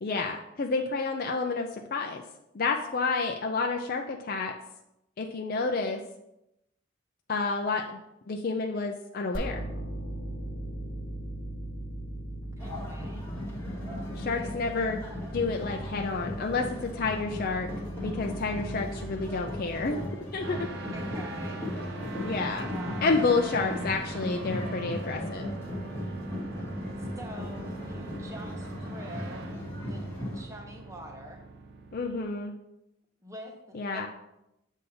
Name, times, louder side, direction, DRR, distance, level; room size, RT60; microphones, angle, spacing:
voice 1, 0.0-2.2 2.5-4.5 5.2-6.0 7.3-8.0 8.3-9.6 14.2-15.0 15.3-17.7 18.0-20.0 20.3-20.7 22.2-22.7 23.0-25.5 31.9-32.5 33.7-34.1, left 4 dB, 45° left, 2 dB, 0.4 m, -29 dB
sound 1, 9.3-20.3, right 1 dB, 75° left, 1.3 m, -40 dB
sound 2, 12.6-30.4, left 1 dB, 15° left, 1.3 m, -37 dB
voice 2, 12.6-13.3 20.9-21.6 22.4-23.1 23.5-23.7 27.2-29.5 29.9-30.0 30.3-31.4 33.2-34.1, equal, 15° right, 2 dB, 0.9 m, -45 dB
sound 3, 20.4-32.2, right 3 dB, 55° right, 0.5 m, -43 dB
8.1 x 2.7 x 5.5 m, 0.87 s
head